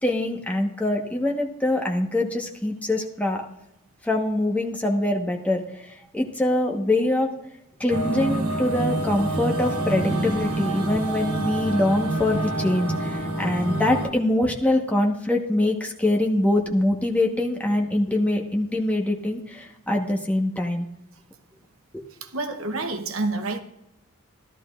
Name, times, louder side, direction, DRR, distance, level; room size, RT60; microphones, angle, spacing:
voice 1, 0.0-3.5 4.0-7.3 7.8-20.9 21.9-22.0, left 1 dB, 5° left, 1.1 m, -24 dB
sound 1, 7.9-14.1, right 2 dB, 90° right, 1.5 m, -27 dB
voice 2, 22.2-23.6, right 3 dB, 70° right, 0.9 m, -28 dB
14.0 x 12.5 x 2.5 m
head